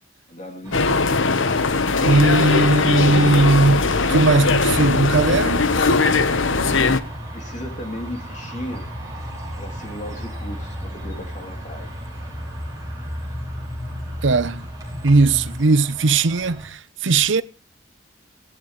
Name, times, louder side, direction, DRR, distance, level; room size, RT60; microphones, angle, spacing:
voice 1, 0.3-1.7 6.4-8.9 9.6-11.9, equal, 35° left, 3.0 m, -36 dB
sound 1, 0.6-16.7, right 1 dB, 15° right, 6.4 m, -40 dB
sound 2, 0.7-7.0, left 3 dB, 70° left, 1.1 m, -19 dB
voice 2, 2.0-5.6 14.2-14.6 15.0-17.4, right 3 dB, 65° right, 0.7 m, -18 dB
sound 3, 4.1-15.6, equal, ahead, 1.3 m, -35 dB
17.5 x 15.0 x 3.2 m
head